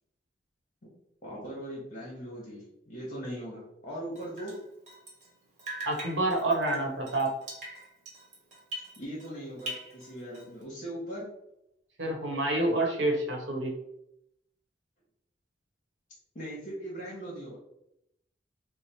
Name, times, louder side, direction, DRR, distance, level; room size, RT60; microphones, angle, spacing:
voice 1, 1.2-4.6 9.0-11.3 16.3-17.6, right 1 dB, 45° left, -5 dB, 0.9 m, -40 dB
Drip, 4.1-5.3 5.6-9.3 9.6-10.6, right 1 dB, 45° right, 0.9 m, -42 dB
voice 2, 5.8-7.3 12.0-13.7, right 2 dB, 80° right, 0 dB, 0.9 m, -28 dB
3.1 x 2.0 x 4.1 m, 0.81 s
head